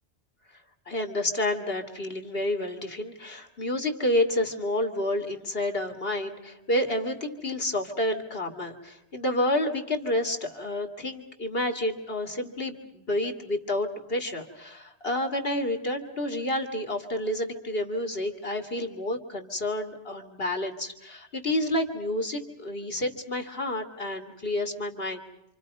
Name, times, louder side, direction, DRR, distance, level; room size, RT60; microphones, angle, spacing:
voice 1, 0.9-25.2, left 1 dB, 55° left, 5 dB, 2.6 m, -29 dB
28.0 x 27.5 x 5.5 m, 0.82 s
omnidirectional pair, 1.1 m